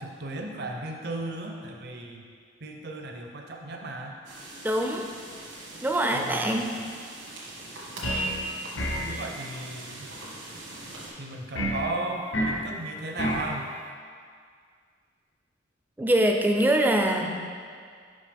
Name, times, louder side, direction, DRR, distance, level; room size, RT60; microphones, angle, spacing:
voice 1, 0.0-2.2 2.6-4.2 6.1-6.6 8.7-10.1 11.2-13.7, right 2 dB, 60° right, 2 dB, 0.6 m, -35 dB
sound 1, 4.2-11.1, right 2 dB, 85° right, 1.4 m, -43 dB
voice 2, 4.6-5.0 5.8-6.7 16.0-17.4, right 1 dB, 10° right, 3 dB, 0.4 m, -23 dB
sound 2, 8.0-8.4 8.8-9.1 11.6-11.8 12.3-12.6 13.2-13.5, equal, 80° left, 0.8 m, -28 dB
5.7 x 5.3 x 3.4 m, 2.1 s
head